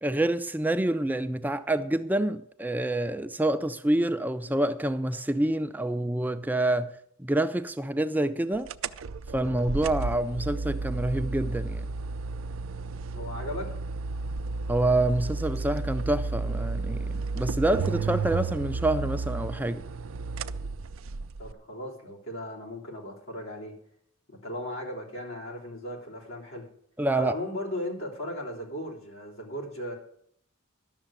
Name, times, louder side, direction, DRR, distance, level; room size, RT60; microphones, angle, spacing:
voice 1, 0.0-6.9 7.2-8.7 9.3-11.8 14.7-19.8 27.0-27.3, right 1 dB, 10° right, 0.4 m, -27 dB
sound 1, 8.7-21.5, right 4 dB, 75° right, 0.5 m, -32 dB
voice 2, 13.1-13.7 21.4-23.7 24.3-26.7 27.1-29.9, left 1 dB, 85° left, 3.5 m, -36 dB
12.0 x 6.7 x 8.8 m
head